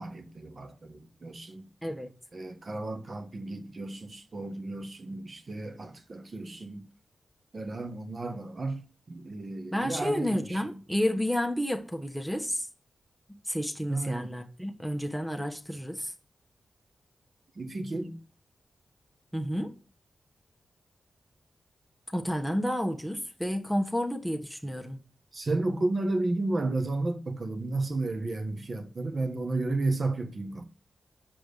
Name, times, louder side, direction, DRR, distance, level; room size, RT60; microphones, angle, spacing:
voice 1, 0.0-1.7 2.3-6.9 7.5-8.8 9.1-10.8 13.9-14.3 17.5-18.2 25.3-30.6, right 2 dB, 50° right, 1.3 m, -33 dB
voice 2, 1.8-2.1 9.7-12.7 13.5-16.1 19.3-19.7 22.1-25.0, equal, 5° right, 1.2 m, -30 dB
6.1 x 5.1 x 6.6 m
cardioid pair, 50°, 0 cm